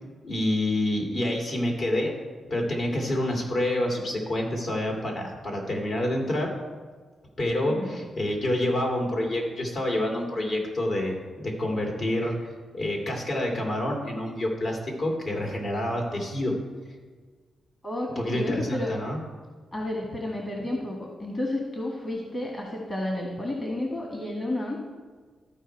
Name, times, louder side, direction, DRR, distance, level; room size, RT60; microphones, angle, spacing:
voice 1, 0.2-2.1 2.5-6.5 7.4-12.5 12.7-16.5 18.2-19.2, left 1 dB, 60° left, 0 dB, 2.4 m, -27 dB
voice 2, 17.8-18.9 19.7-24.8, left 1 dB, 30° left, -1 dB, 1.7 m, -31 dB
13.5 x 4.7 x 4.5 m, 1.5 s
cardioid pair, 75°, 0 cm